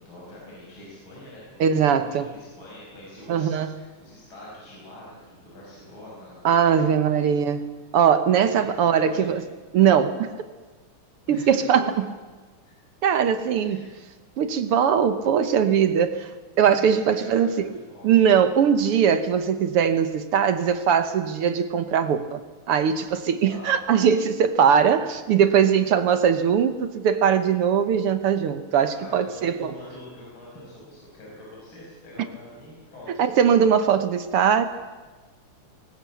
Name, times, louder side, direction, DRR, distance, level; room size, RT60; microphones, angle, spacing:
voice 1, 0.0-7.3 8.5-9.3 11.3-11.9 12.6-12.8 13.6-13.9 14.4-14.5 16.6-18.1 23.5-23.8 28.9-33.2, left 1 dB, 40° left, -5 dB, 6.1 m, -44 dB
voice 2, 1.6-2.3 3.3-3.8 6.4-7.6 7.9-9.4 9.7-10.3 11.3-12.1 13.0-13.9 14.4-16.3 16.6-17.7 18.0-22.4 22.7-29.7 33.1-34.6, right 8 dB, 65° right, 10 dB, 1.5 m, -20 dB
20.5 x 19.0 x 8.4 m, 1.3 s
omnidirectional pair, 3.5 m